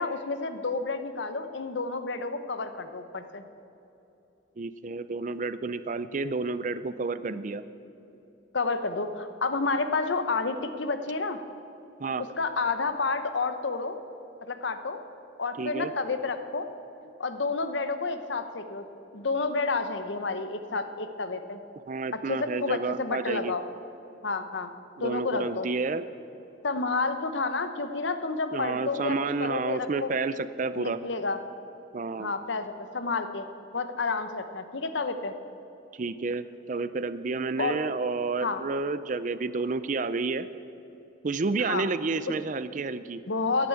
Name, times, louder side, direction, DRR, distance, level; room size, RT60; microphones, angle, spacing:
voice 1, 0.0-3.5 8.5-11.4 12.4-14.0 14.5-15.0 15.4-16.7 17.2-18.9 19.1-21.6 22.1-23.6 24.2-24.7 25.0-25.7 26.6-30.2 30.8-31.4 32.2-33.4 33.7-35.3 37.6-37.8 38.4-38.6 41.6-41.9 43.3-43.7, left 3 dB, 65° left, 9 dB, 0.9 m, -30 dB
voice 2, 4.6-7.6 12.0-12.2 15.6-15.9 21.9-23.5 25.0-26.1 28.5-31.0 31.9-32.3 35.9-40.5 41.2-43.2, right 3 dB, 40° right, 14 dB, 0.4 m, -30 dB
11.0 x 9.9 x 8.6 m, 2.9 s
head